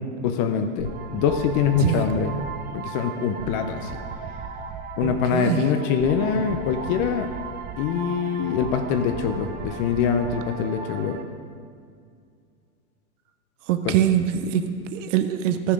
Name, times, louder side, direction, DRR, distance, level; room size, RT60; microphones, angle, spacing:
voice 1, 0.2-2.3 2.7-3.9 5.0-7.3 7.8-11.2 13.8-13.9, left 7 dB, 40° left, 6 dB, 0.7 m, -24 dB
sound 1, 0.8-11.2, right 5 dB, 20° right, 0.7 m, -36 dB
voice 2, 1.8-2.1 5.0-5.7 13.7-15.7, right 10 dB, 60° right, 9 dB, 0.9 m, -23 dB
12.5 x 7.2 x 4.9 m, 2.3 s
hypercardioid pair, 125°, 43 cm